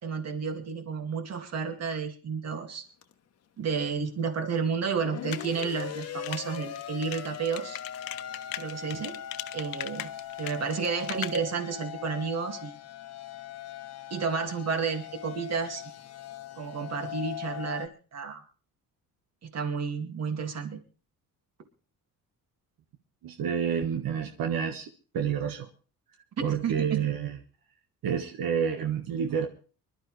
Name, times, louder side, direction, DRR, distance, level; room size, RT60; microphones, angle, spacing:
voice 1, 0.0-2.8 3.6-7.8 8.6-9.2 9.5-10.1 10.4-12.8 14.1-15.8 16.6-18.4 19.4-20.8 26.6-27.1, right 5 dB, 50° right, 6 dB, 2.3 m, -31 dB
sound 1, 3.0-3.1 5.0-17.9, left 10 dB, 50° left, 1.1 m, -40 dB
sound 2, 5.3-11.4, left 13 dB, 85° left, 0.9 m, -38 dB
voice 2, 23.2-24.9 25.1-25.7 26.4-27.4 28.0-29.5, right 7 dB, 80° right, 5 dB, 1.5 m, -29 dB
24.5 x 12.0 x 3.3 m, 0.37 s
cardioid pair, 155°, 34 cm